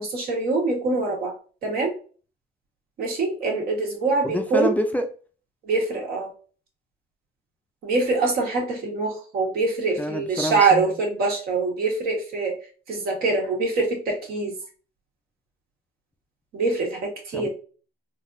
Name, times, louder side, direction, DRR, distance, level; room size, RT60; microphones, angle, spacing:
voice 1, 0.0-1.3 1.6-1.9 3.0-4.7 5.6-6.3 7.8-12.6 12.9-14.5 16.5-17.5, right 3 dB, 65° right, 1.7 m, -24 dB
voice 2, 4.2-5.1 10.0-10.9 17.3-17.5, left 1 dB, 10° left, 0.5 m, -27 dB
3.9 x 2.8 x 2.5 m
cardioid pair, 110°, 17 cm